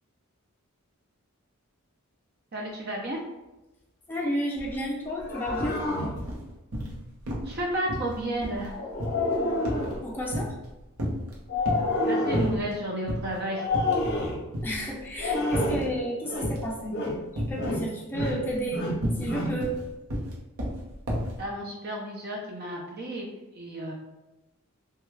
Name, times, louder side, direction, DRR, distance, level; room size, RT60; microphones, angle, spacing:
voice 1, 2.5-3.2 7.4-8.7 12.1-13.7 21.4-23.3 23.5-23.9, right 1 dB, 45° right, -1 dB, 0.5 m, -32 dB
voice 2, 4.1-5.9 10.0-10.6 14.6-17.0 17.5-18.9 19.1-19.8, equal, 10° left, -3 dB, 0.5 m, -31 dB
sound 1, 4.6-4.8 5.1-5.8 6.2-7.0 7.3-7.6 7.9-10.7 11.0-11.9 12.3-12.7 13.1-13.3 13.7-14.2 14.5-15.9 16.4-16.8 17.4-17.8 18.1-21.4, equal, 85° right, 0.8 m, -32 dB
sound 2, 5.0-6.2 8.7-10.0 11.5-12.6 13.5-14.4 15.2-16.0 16.2-16.6 16.9-17.2 17.6-18.4 18.7-19.6, left 2 dB, 45° left, 0.7 m, -29 dB
3.3 x 2.3 x 3.1 m, 1.0 s
head